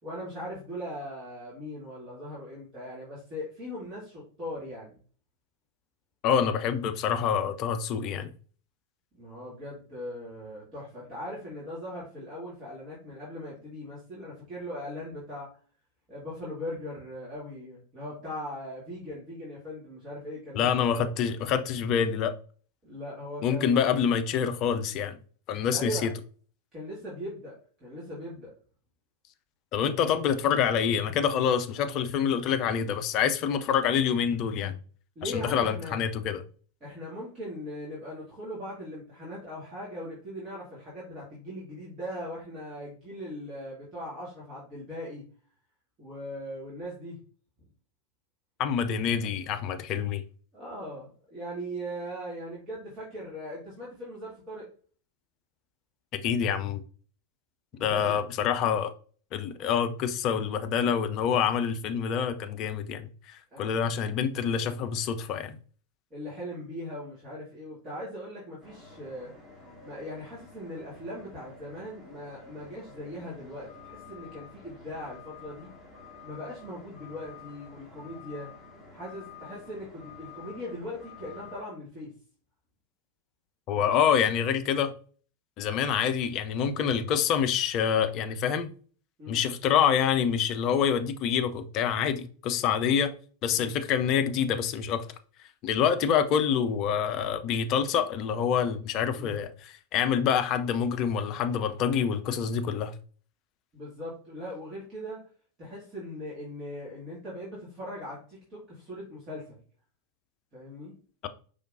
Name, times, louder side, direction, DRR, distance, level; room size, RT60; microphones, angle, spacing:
voice 1, 0.0-5.0 9.1-15.5 16.1-21.1 22.8-24.0 25.7-26.1 26.7-28.5 35.2-36.0 36.8-45.3 46.0-47.2 50.5-54.7 57.7-58.2 63.5-63.7 66.1-69.3 69.8-75.7 76.2-78.5 78.9-82.1 89.2-89.4 93.5-93.7 99.2-99.4 103.7-105.2 105.6-109.6 110.5-111.0, equal, 25° right, 1.9 m, -39 dB
voice 2, 6.2-8.3 20.5-22.3 23.4-25.2 25.5-26.1 29.7-34.7 35.2-36.4 48.6-50.2 56.1-56.8 57.8-58.9 59.3-65.6 83.7-84.9 85.6-88.7 89.3-93.1 93.4-95.0 95.6-102.9 111.2-111.3, left 7 dB, 40° left, 0.5 m, -26 dB
sound 1, 68.6-81.6, left 4 dB, 5° right, 2.0 m, -49 dB
5.1 x 3.4 x 2.6 m
figure-of-eight pair, 90°, 0 cm